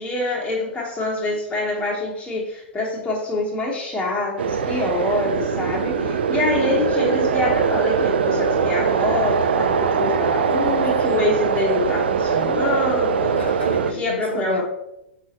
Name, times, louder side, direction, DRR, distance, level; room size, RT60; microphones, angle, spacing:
voice 1, 0.0-13.4 13.9-14.6, left 2 dB, 15° left, -4 dB, 1.3 m, -25 dB
sound 1, 4.4-13.9, right 6 dB, 70° right, 0.5 m, -21 dB
voice 2, 10.5-11.9 13.4-14.6, left 3 dB, 80° left, 3 dB, 0.8 m, -34 dB
6.1 x 5.7 x 2.9 m, 0.85 s
figure-of-eight pair, 105°, 6 cm